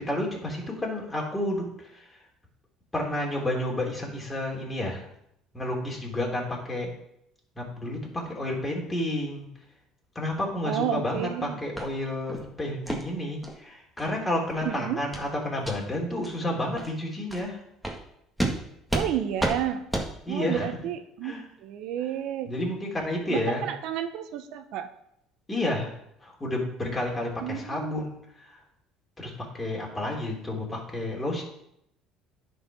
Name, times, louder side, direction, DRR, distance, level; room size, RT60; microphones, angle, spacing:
voice 1, 0.0-2.2 2.9-5.0 5.5-6.9 7.5-9.5 10.1-17.6 20.3-20.7 21.2-21.4 22.4-23.7 25.5-25.9 26.2-28.6 29.2-31.4, left 1 dB, 15° left, -2 dB, 3.1 m, -30 dB
voice 2, 10.6-11.6 14.6-15.0 18.9-19.8 20.3-22.5 23.3-24.9 27.4-28.0, right 10 dB, 70° right, 9 dB, 0.7 m, -31 dB
sound 1, 11.8-11.9 12.3-12.4 12.9-13.0 13.4-13.5 14.0-14.1 14.5-14.7 15.1-15.3 15.6-15.8 16.2-16.3 16.8-16.9 17.3-17.4 17.8-18.0 18.4-18.5 18.9-19.1 19.4-19.6 19.9-20.1, right 1 dB, ahead, 1.9 m, -30 dB
9.8 x 4.7 x 5.9 m, 0.77 s
supercardioid pair, 90°, 0 cm